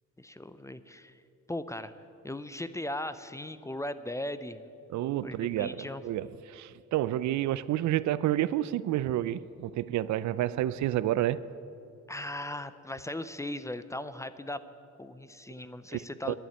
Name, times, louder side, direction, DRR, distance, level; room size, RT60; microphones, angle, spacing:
voice 1, 0.2-1.2 1.5-1.9 2.2-4.7 5.2-6.0 12.1-14.6 15.0-16.4, left 1 dB, 10° left, 13 dB, 0.5 m, -38 dB
voice 2, 4.9-11.4 15.9-16.4, right 13 dB, 70° right, 18 dB, 0.4 m, -30 dB
11.5 x 7.2 x 9.9 m, 2.6 s
cardioid pair, 90°, 30 cm